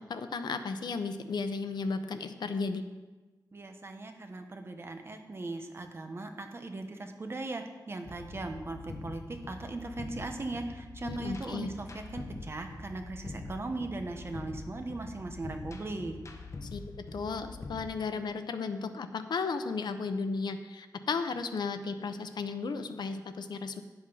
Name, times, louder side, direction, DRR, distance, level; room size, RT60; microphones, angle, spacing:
voice 1, 0.1-2.8 11.0-11.7 16.6-16.8 17.1-23.8, left 4 dB, 80° left, 8 dB, 0.7 m, -34 dB
voice 2, 3.5-16.2, right 2 dB, 35° right, 5 dB, 1.0 m, -39 dB
sound 1, 8.0-17.8, left 3 dB, 45° left, 1.0 m, -44 dB
9.7 x 7.9 x 5.5 m, 1.2 s
wide cardioid pair, 165°, 7 cm